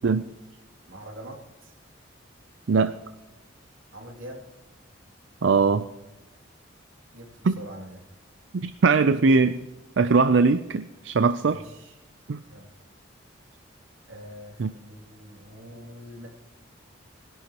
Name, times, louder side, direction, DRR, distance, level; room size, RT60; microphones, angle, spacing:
voice 1, 0.9-1.7 3.9-4.5 7.1-8.1 11.4-12.0 12.5-12.8 14.1-16.3, equal, 85° right, 1 dB, 2.6 m, -44 dB
voice 2, 5.4-5.8 7.4-7.5 8.5-9.6 10.0-11.6 12.3-12.4 14.6-14.7, right 4 dB, 65° right, 12 dB, 0.4 m, -21 dB
19.5 x 11.0 x 2.9 m, 1.0 s
head